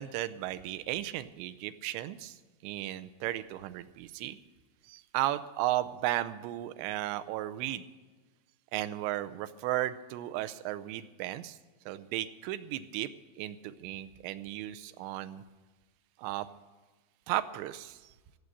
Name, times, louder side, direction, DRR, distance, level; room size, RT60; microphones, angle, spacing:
voice 1, 0.0-2.4 2.6-4.4 4.9-7.8 8.7-11.6 11.9-13.1 13.4-15.4 16.2-16.5 17.3-18.0, right 14 dB, 80° right, 12 dB, 2.9 m, -35 dB
16.5 x 7.9 x 8.2 m, 1.3 s
omnidirectional pair, 5.2 m